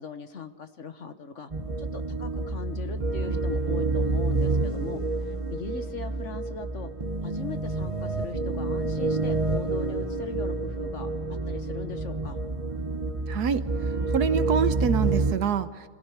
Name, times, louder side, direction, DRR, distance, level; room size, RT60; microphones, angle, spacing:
voice 1, 0.0-1.5 1.8-6.9 7.2-12.4, left 5 dB, 50° left, 8 dB, 1.4 m, -40 dB
sound 1, 1.5-15.4, right 3 dB, 25° right, 1.1 m, -28 dB
voice 2, 13.3-13.7 14.1-15.9, right 7 dB, 75° right, 12 dB, 1.5 m, -26 dB
26.0 x 16.5 x 9.9 m, 1.5 s
omnidirectional pair, 1.7 m